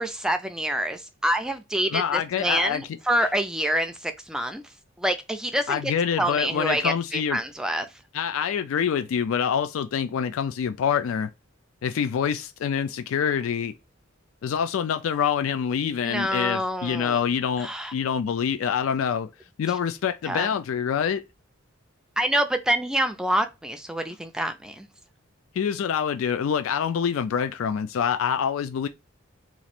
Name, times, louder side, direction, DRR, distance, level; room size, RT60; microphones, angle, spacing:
voice 1, 0.0-4.6 5.0-5.8 6.2-7.9 16.0-17.2 17.6-17.9 20.3-20.5 22.2-24.9, right 1 dB, 5° right, 0.3 m, -26 dB
voice 2, 1.9-2.8 5.7-7.4 8.1-11.3 11.8-13.7 14.4-19.3 19.6-21.2 25.6-28.9, left 7 dB, 75° left, 0.3 m, -26 dB
3.0 x 2.4 x 4.2 m
head